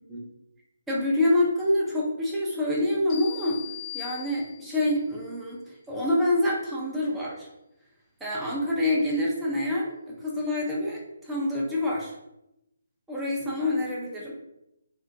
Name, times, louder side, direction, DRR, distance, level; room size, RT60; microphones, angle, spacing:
voice 1, 0.9-3.6 3.9-7.5 8.2-12.1 13.1-14.3, left 1 dB, 5° right, -5 dB, 0.6 m, -26 dB
sound 1, 3.1-4.9, left 14 dB, 25° left, 0.7 m, -40 dB
2.6 x 2.1 x 2.6 m, 0.86 s
figure-of-eight pair, 150°, 0 cm